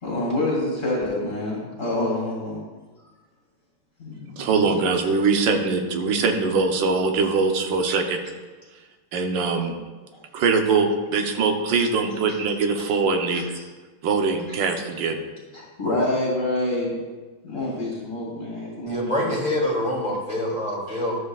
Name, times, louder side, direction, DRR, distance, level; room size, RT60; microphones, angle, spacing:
voice 1, 0.0-2.6 4.0-4.5 13.3-13.4 15.5-17.0 17.4-19.3 20.9-21.0, left 1 dB, 25° left, -5 dB, 2.6 m, -27 dB
voice 2, 4.4-8.2 9.1-9.7 10.3-13.4 14.0-15.2, right 4 dB, 65° right, 4 dB, 1.5 m, -22 dB
voice 3, 18.9-21.2, left 1 dB, 5° right, -5 dB, 2.6 m, -25 dB
13.0 x 8.0 x 2.4 m, 1.3 s
omnidirectional pair, 2.4 m